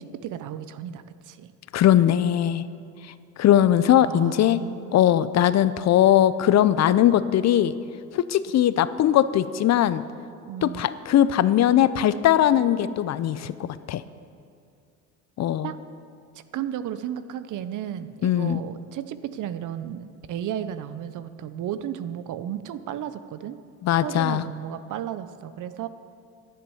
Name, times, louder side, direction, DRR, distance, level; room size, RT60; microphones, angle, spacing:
voice 1, 0.0-1.5 4.0-5.1 10.5-10.8 15.6-15.8 16.5-23.6 24.0-25.9, right 10 dB, 60° right, 12 dB, 0.8 m, -34 dB
voice 2, 1.7-2.7 3.4-4.6 4.9-7.7 8.1-10.0 10.6-14.0 15.4-15.7 18.2-18.6 23.8-24.4, left 11 dB, 50° left, 15 dB, 0.6 m, -20 dB
11.0 x 10.5 x 7.2 m, 2.4 s
supercardioid pair, 75°, 34 cm